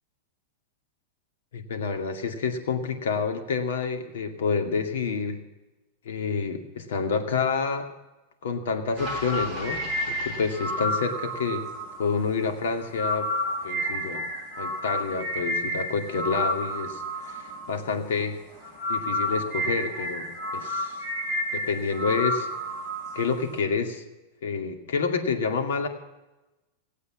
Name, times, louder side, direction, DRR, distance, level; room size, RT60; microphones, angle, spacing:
voice 1, 1.5-5.4 6.0-7.9 8.4-11.7 12.0-13.3 13.6-14.3 14.6-18.4 18.9-21.0 21.5-22.5 23.1-24.0 24.4-25.9, left 5 dB, 90° left, 6 dB, 2.2 m, -28 dB
sound 1, 9.0-18.2 18.5-23.6, left 1 dB, 5° left, 2.8 m, -31 dB
18.0 x 8.3 x 7.4 m, 1.0 s
supercardioid pair, 175°, 0 cm